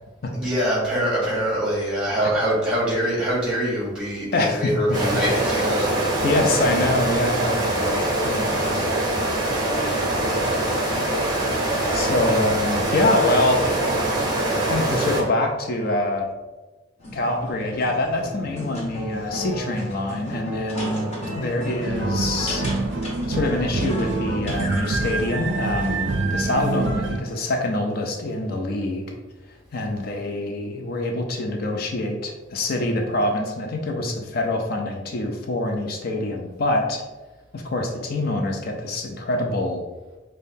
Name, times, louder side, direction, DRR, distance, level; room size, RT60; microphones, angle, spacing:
voice 1, 0.3-6.2, equal, 5° right, -7 dB, 1.4 m, -24 dB
voice 2, 4.3-5.2 6.2-8.9 11.9-13.6 14.6-16.3 17.1-22.6 23.3-29.1 29.7-37.0 37.5-39.8, left 2 dB, 50° left, 2 dB, 0.4 m, -25 dB
sound 1, 4.9-15.2, right 1 dB, 20° right, 0.7 m, -23 dB
sound 2, 17.0-26.0, equal, 35° left, 0.8 m, -33 dB
sound 3, 21.8-27.2, right 3 dB, 65° right, 0.4 m, -26 dB
5.2 x 2.2 x 2.7 m, 1.1 s
head